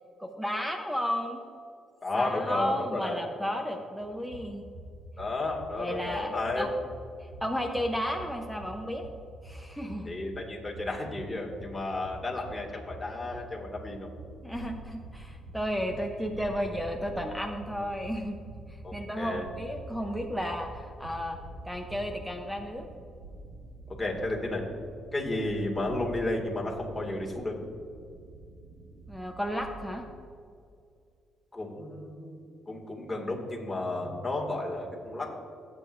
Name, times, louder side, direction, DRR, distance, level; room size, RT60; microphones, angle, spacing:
voice 1, 0.2-1.4 2.1-4.6 5.8-6.7 7.4-9.1 9.4-10.1 14.4-18.4 18.9-21.4 21.6-22.9 29.1-30.1, equal, ahead, 4 dB, 0.8 m, -33 dB
voice 2, 2.0-3.3 5.2-6.7 10.0-14.1 18.8-19.4 23.9-24.6 25.1-27.6 31.5-32.4 32.7-35.3, left 2 dB, 15° left, -1 dB, 2.2 m, -33 dB
sound 1, 4.0-22.2, right 1 dB, 60° right, 2.0 m, -47 dB
sound 2, 14.5-30.1, right 2 dB, 80° right, 1.4 m, -48 dB
16.5 x 7.8 x 2.6 m, 2.4 s
cardioid pair, 90°, 0 cm